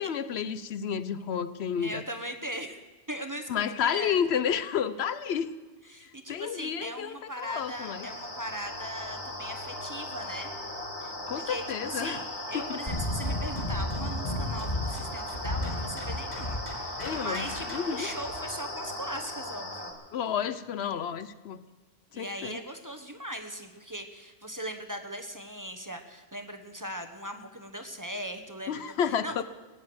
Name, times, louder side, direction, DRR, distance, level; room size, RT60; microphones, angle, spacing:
voice 1, 0.0-2.0 3.5-5.5 6.0-8.1 11.3-12.2 12.5-12.8 17.0-18.1 20.1-21.6 22.1-22.6 28.7-29.4, left 8 dB, 75° left, 14 dB, 0.9 m, -31 dB
voice 2, 1.8-2.8 3.1-4.1 5.9-10.5 11.0-19.9 22.1-29.4, equal, 20° right, 6 dB, 1.0 m, -39 dB
sound 1, 7.3-19.9, left 1 dB, 20° left, 2.1 m, -38 dB
sound 2, 12.9-18.4, left 1 dB, 40° left, 2.9 m, -33 dB
17.0 x 9.5 x 7.8 m, 1.3 s
omnidirectional pair, 1.1 m